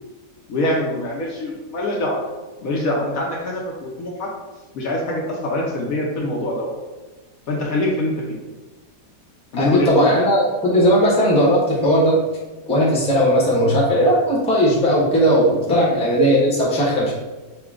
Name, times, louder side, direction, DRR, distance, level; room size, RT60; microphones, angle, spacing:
voice 1, 0.5-2.2 2.6-4.3 4.7-6.7 7.5-8.1 9.5-10.1 15.7-15.9, left 1 dB, 60° left, -2 dB, 1.1 m, -24 dB
voice 2, 9.6-12.2 12.7-17.1, equal, 5° left, -5 dB, 0.8 m, -17 dB
5.7 x 2.3 x 3.6 m, 1.2 s
omnidirectional pair, 1.8 m